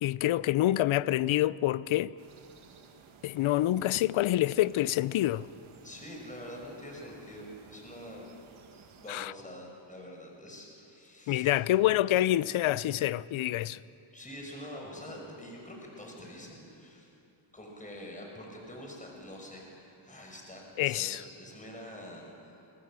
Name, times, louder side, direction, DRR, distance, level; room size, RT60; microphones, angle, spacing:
voice 1, 0.0-2.1 3.2-5.5 9.1-9.3 11.3-13.8 20.8-21.2, left 14 dB, 70° left, 0.7 m, -27 dB
sound 1, 2.2-9.1, right 5 dB, 75° right, 2.4 m, -56 dB
voice 2, 5.8-8.3 9.0-11.5 12.4-12.5 14.1-17.1 17.5-22.7, left 1 dB, 15° left, 5.9 m, -45 dB
26.0 x 19.5 x 7.6 m
cardioid pair, 90°, 50 cm